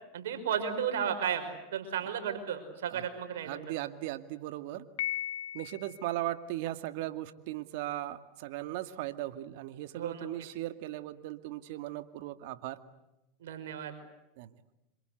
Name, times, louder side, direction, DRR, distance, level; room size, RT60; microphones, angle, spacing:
voice 1, 0.1-3.6 9.9-10.3 13.4-13.9, right 8 dB, 80° right, 7 dB, 5.6 m, -34 dB
voice 2, 3.4-4.9 5.5-12.8 14.4-14.5, right 15 dB, 65° right, 10 dB, 2.1 m, -38 dB
Piano, 5.0-6.1, left 14 dB, 75° left, 2.5 m, -36 dB
27.0 x 27.0 x 8.1 m, 0.92 s
hypercardioid pair, 110°, 0 cm